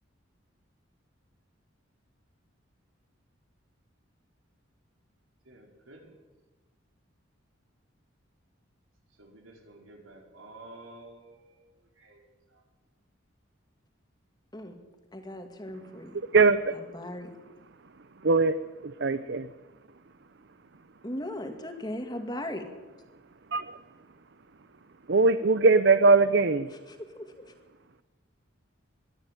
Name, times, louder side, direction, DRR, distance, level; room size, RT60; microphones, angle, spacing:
voice 1, 5.5-6.1 9.2-12.2 12.5-12.6, right 2 dB, 85° right, 2 dB, 4.7 m, -51 dB
voice 2, 15.1-16.2 16.9-17.3 21.0-22.7 26.9-27.5, left 1 dB, 20° left, 6 dB, 2.2 m, -37 dB
voice 3, 16.3-16.7 18.2-18.6 18.8-19.5 23.5-23.8 25.1-26.7, right 3 dB, 60° right, 13 dB, 0.7 m, -21 dB
22.0 x 14.0 x 9.1 m, 1.2 s
head